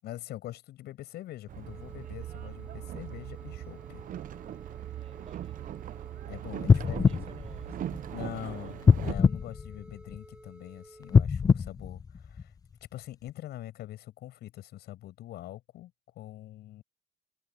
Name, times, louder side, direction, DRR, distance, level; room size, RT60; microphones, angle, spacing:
voice 1, 0.0-4.0 6.3-7.1 8.1-12.5 12.9-16.8, left 14 dB, 75° left, 7.7 m, -44 dB
Boat Water vehicle, 1.5-9.1, right 12 dB, 55° right, 0.7 m, -40 dB
sound 1, 1.6-11.2, right 1 dB, 5° right, 6.1 m, -53 dB
voice 2, 4.9-5.8 6.6-8.8, right 6 dB, 35° right, 5.8 m, -57 dB
sound 2, 6.6-8.3 8.8-10.4 11.0-12.7 13.3-13.4, left 5 dB, 20° left, 0.4 m, -24 dB
cardioid pair, 110°, 17 cm